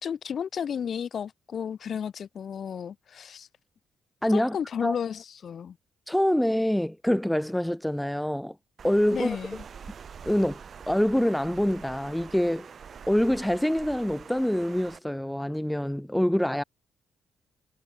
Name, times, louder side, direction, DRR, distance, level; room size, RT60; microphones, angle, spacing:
voice 1, 0.0-3.5 4.3-5.8 9.1-9.6, left 7 dB, 55° left, 1.4 m, -33 dB
voice 2, 4.2-4.6 4.8-5.0 6.1-8.6 8.8-9.4 10.2-10.6 10.9-12.7 13.1-16.6, equal, 5° left, 0.5 m, -25 dB
Water, 8.8-15.0, right 7 dB, 50° right, 7.6 m, -45 dB
cardioid pair, 90°, 0 cm